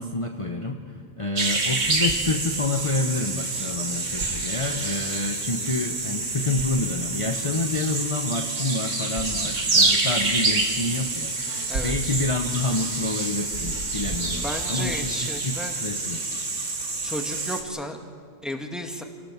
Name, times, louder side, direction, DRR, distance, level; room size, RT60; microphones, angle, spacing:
voice 1, 0.0-16.2, left 2 dB, 30° left, 3 dB, 1.1 m, -28 dB
sound 1, 1.3-17.6, right 3 dB, 90° right, 2.5 m, -27 dB
voice 2, 9.3-9.6 11.7-12.2 14.3-15.7 17.0-18.0 18.4-19.0, equal, ahead, 3 dB, 1.8 m, -34 dB
27.0 x 18.0 x 7.4 m, 2.1 s
omnidirectional pair, 1.2 m